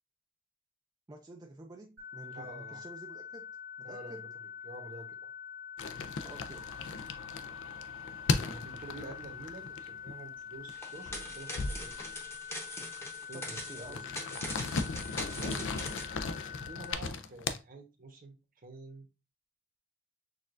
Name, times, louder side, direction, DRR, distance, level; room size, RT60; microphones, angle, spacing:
voice 1, 1.1-4.3 6.2-6.7 13.3-14.2 15.4-15.7, right 2 dB, 20° right, 0.4 m, -50 dB
sound 1, 2.0-16.9, left 8 dB, 90° right, 1.6 m, -45 dB
voice 2, 2.3-2.8 3.8-4.3 4.6-5.3 8.4-12.1 13.3-14.1 15.3-15.9 16.6-19.1, right 2 dB, 45° right, 1.0 m, -48 dB
sound 2, 5.8-10.3 10.5-10.8 11.1-12.3 13.0-13.1 13.4-17.6, left 4 dB, 70° left, 0.5 m, -37 dB
sound 3, 10.7-16.1, left 1 dB, 15° left, 0.8 m, -42 dB
6.4 x 2.4 x 2.5 m
head